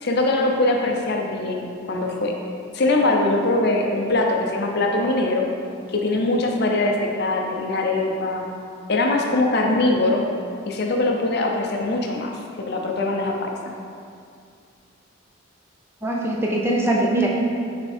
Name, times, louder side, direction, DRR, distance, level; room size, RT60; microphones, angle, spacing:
voice 1, 0.0-2.3 2.7-5.5 5.9-8.4 8.9-10.2 10.7-13.7, left 2 dB, 50° left, 1 dB, 0.5 m, -22 dB
voice 2, 16.0-17.3, right 1 dB, 10° right, -3 dB, 0.5 m, -21 dB
6.7 x 3.5 x 4.2 m, 2.4 s
head